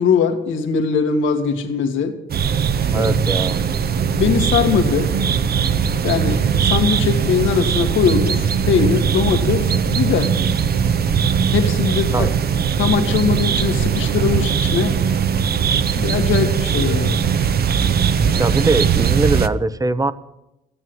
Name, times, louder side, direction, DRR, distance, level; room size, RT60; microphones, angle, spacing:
voice 1, 0.0-2.2 2.9-3.1 4.0-5.1 6.0-10.4 11.5-12.3 12.8-15.0 15.9-17.2, left 6 dB, 80° left, 1.9 m, -21 dB
sound 1, 2.3-19.5, right 7 dB, 50° right, 0.8 m, -19 dB
voice 2, 2.9-3.6 12.1-12.3 18.4-20.1, right 3 dB, 15° right, 0.9 m, -21 dB
14.0 x 9.9 x 7.9 m
cardioid pair, 90°, 20 cm